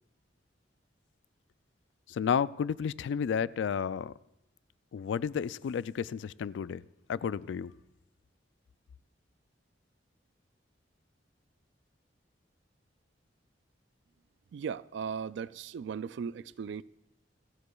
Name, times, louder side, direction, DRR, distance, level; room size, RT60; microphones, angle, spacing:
voice 1, 2.1-4.1 4.9-6.8 7.1-7.7, left 7 dB, 75° left, 0.3 m, -32 dB
voice 2, 14.5-16.8, right 6 dB, 65° right, 0.3 m, -37 dB
27.5 x 9.6 x 2.3 m
head